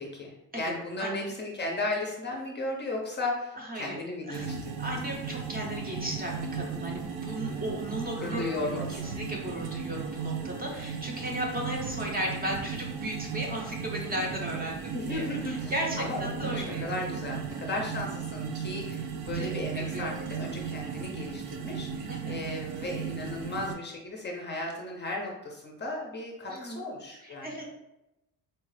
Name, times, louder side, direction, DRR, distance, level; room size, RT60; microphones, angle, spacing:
voice 1, 0.0-4.8 7.3-7.7 8.1-9.1 14.9-27.6, left 2 dB, 30° left, -1 dB, 0.5 m, -35 dB
voice 2, 1.0-1.3 3.6-4.0 4.3-4.5 4.8-16.8 17.7-17.8 19.3-19.5 19.8-20.3 22.1-22.3 26.5-26.8 27.2-27.6, right 1 dB, 25° right, -1 dB, 0.7 m, -35 dB
sound 1, 4.3-23.8, right 6 dB, 70° right, 0.5 m, -36 dB
4.4 x 2.3 x 3.2 m, 0.90 s
cardioid pair, 155°, 38 cm